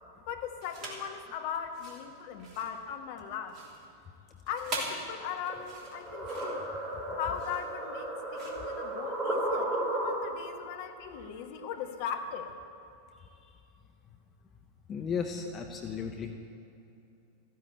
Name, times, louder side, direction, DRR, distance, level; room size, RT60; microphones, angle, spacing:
voice 1, 0.3-3.8 4.5-6.7 7.1-12.5, left 7 dB, 50° left, 6 dB, 1.3 m, -38 dB
sound 1, 0.6-1.1 1.6-9.5, right 2 dB, 35° right, 3.0 m, -43 dB
sound 2, 5.5-10.5, right 1 dB, 15° right, 3.4 m, -34 dB
voice 2, 14.9-16.3, left 6 dB, 25° left, 5 dB, 1.0 m, -34 dB
14.5 x 10.5 x 8.6 m, 2.8 s
figure-of-eight pair, 90°, 0 cm